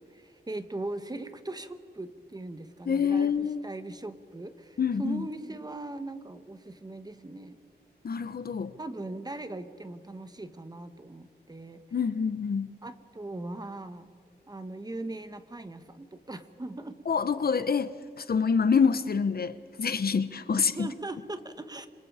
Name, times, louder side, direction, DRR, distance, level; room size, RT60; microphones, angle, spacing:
voice 1, 0.1-7.6 8.8-12.1 12.8-14.1 14.5-17.0 20.5-21.9, right 2 dB, 20° right, 10 dB, 1.5 m, -40 dB
voice 2, 2.9-3.6 4.8-5.3 8.0-8.7 11.9-12.7 17.1-20.9, left 6 dB, 60° left, 13 dB, 1.0 m, -27 dB
27.0 x 26.0 x 5.0 m, 2.1 s
wide cardioid pair, 105°, 18 cm